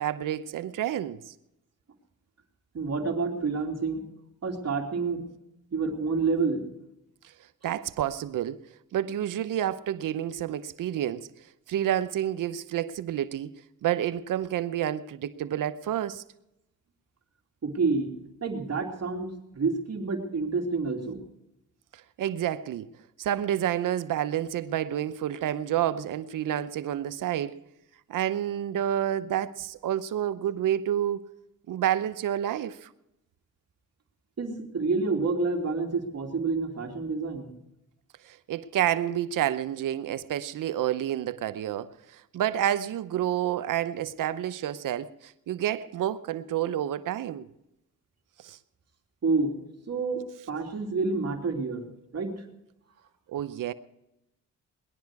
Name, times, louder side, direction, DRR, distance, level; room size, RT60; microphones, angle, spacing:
voice 1, 0.0-1.3 7.6-8.6 8.9-11.3 11.7-13.5 13.8-16.2 21.9-22.9 23.2-27.6 28.1-31.3 31.7-32.9 38.2-47.5 48.4-48.6 53.3-53.7, right 11 dB, 80° right, 0.8 m, -29 dB
voice 2, 2.7-4.0 4.4-5.2 5.7-6.7 17.6-18.1 18.4-21.2 34.4-37.5 49.2-49.5 49.9-51.8 52.1-52.5, right 4 dB, 55° right, 2.8 m, -28 dB
20.0 x 11.5 x 4.7 m
cardioid pair, 70°, 31 cm